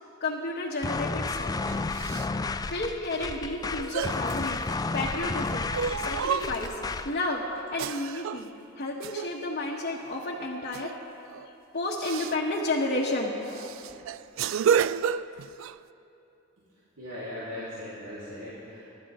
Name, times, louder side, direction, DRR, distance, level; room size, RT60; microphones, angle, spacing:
voice 1, 0.2-1.7 2.7-5.7 6.0-6.8 7.0-13.7, left 2 dB, 45° left, -4 dB, 1.3 m, -32 dB
sound 1, 0.8-7.2, left 3 dB, 20° left, 0.3 m, -32 dB
sound 2, 1.7-2.3 3.2-3.3 3.7-5.2 5.7-6.9 7.8-8.5 9.0-9.4 10.7-11.0 11.3-11.5 12.0-12.4 13.0-13.1 13.5-15.8, right 7 dB, 65° right, 0.3 m, -30 dB
voice 2, 17.0-18.8, left 1 dB, 85° right, -11 dB, 3.5 m, -38 dB
25.5 x 12.0 x 3.7 m, 2.8 s
head